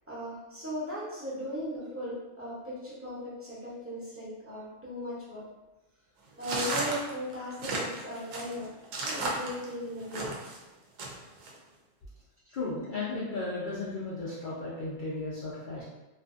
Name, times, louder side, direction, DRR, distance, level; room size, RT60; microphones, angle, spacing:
voice 1, 0.1-5.4 6.4-8.7 9.0-10.3, equal, 15° right, -8 dB, 0.6 m, -37 dB
sound 1, 6.4-10.6 11.0-11.5, right 2 dB, 75° right, 0.9 m, -34 dB
voice 2, 12.5-15.8, left 3 dB, 65° left, -8 dB, 0.5 m, -35 dB
2.5 x 2.5 x 2.4 m, 1.1 s
omnidirectional pair, 1.4 m